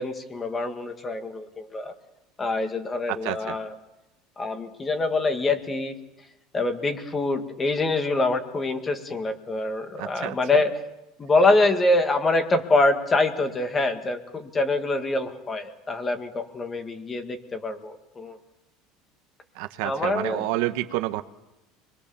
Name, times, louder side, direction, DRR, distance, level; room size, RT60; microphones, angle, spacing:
voice 1, 0.0-1.9 2.4-3.7 4.4-6.0 6.5-10.7 11.2-18.4 19.8-20.4, left 2 dB, 15° left, 7 dB, 1.8 m, -25 dB
voice 2, 3.1-3.6 10.0-10.6 19.5-21.2, right 16 dB, 65° right, 9 dB, 1.1 m, -29 dB
26.0 x 22.0 x 7.1 m, 0.97 s
cardioid pair, 165°, 0 cm